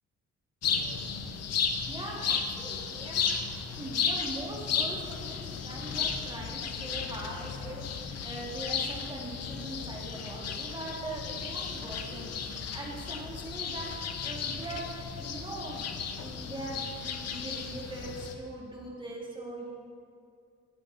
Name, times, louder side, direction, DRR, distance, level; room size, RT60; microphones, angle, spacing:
sound 1, 0.6-18.4, left 6 dB, 55° left, 0.8 m, -34 dB
voice 1, 1.9-12.3 12.6-13.9 14.2-15.9 16.2-19.7, right 1 dB, 15° right, -3 dB, 2.0 m, -41 dB
15.5 x 5.2 x 4.0 m, 2.4 s
cardioid pair, 90°, 30 cm